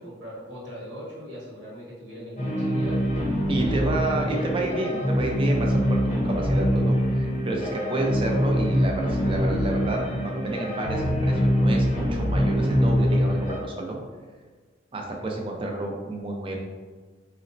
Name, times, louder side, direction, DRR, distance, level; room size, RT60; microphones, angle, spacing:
voice 1, 0.0-3.0 3.3-4.2, equal, 70° right, -6 dB, 1.0 m, -40 dB
sound 1, 2.4-13.6, equal, 35° left, 0.6 m, -24 dB
voice 2, 3.5-14.0 14.9-16.6, right 2 dB, 25° right, 0 dB, 0.4 m, -30 dB
4.0 x 2.0 x 2.6 m, 1.5 s
head